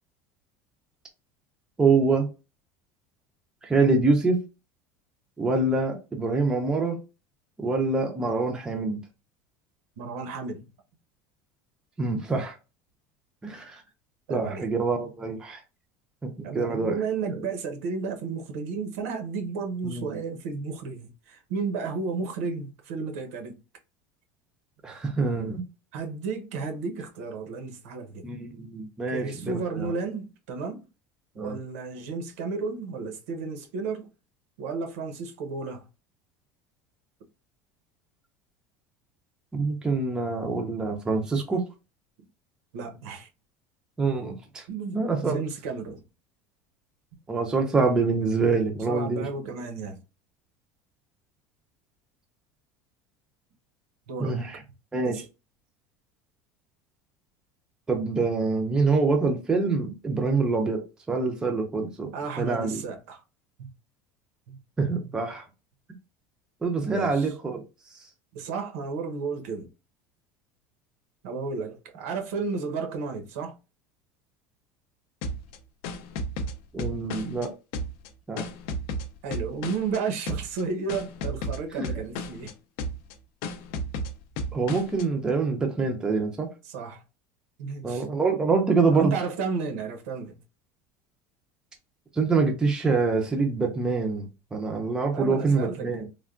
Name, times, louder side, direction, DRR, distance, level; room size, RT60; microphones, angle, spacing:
voice 1, 1.8-2.3 3.6-4.4 5.4-7.0 7.6-9.0 12.0-12.5 13.4-13.8 14.3-15.6 16.2-17.0 17.3-17.4 19.8-20.2 24.8-25.6 28.2-29.9 31.4-31.6 39.5-41.6 44.0-44.7 44.9-45.4 47.3-49.3 54.2-54.6 54.9-55.2 57.9-62.1 62.4-62.8 64.8-65.4 66.6-67.6 67.9-68.0 76.7-77.5 78.3-78.5 81.8-81.9 84.5-86.5 87.8-89.1 92.1-96.1, right 4 dB, 10° right, 0.4 m, -25 dB
voice 2, 10.0-10.7 14.3-14.7 16.4-23.6 25.9-28.3 29.1-30.9 31.3-34.1 34.6-35.9 42.7-43.3 44.7-46.0 48.9-50.0 54.1-54.4 55.0-55.2 62.1-63.2 63.6-63.7 64.5-64.6 65.0-65.1 66.9-67.3 68.3-69.7 71.2-73.6 77.2-77.5 79.2-82.6 86.6-87.0 87.6-88.0 88.9-90.4 95.1-96.0, right 4 dB, 85° right, 0.8 m, -33 dB
sound 1, 75.2-77.5 77.7-80.0 80.3-80.6 80.9-82.5 82.8-83.1 83.4-85.0, equal, 55° left, 0.4 m, -33 dB
3.3 x 2.2 x 2.4 m
cardioid pair, 175°, 8 cm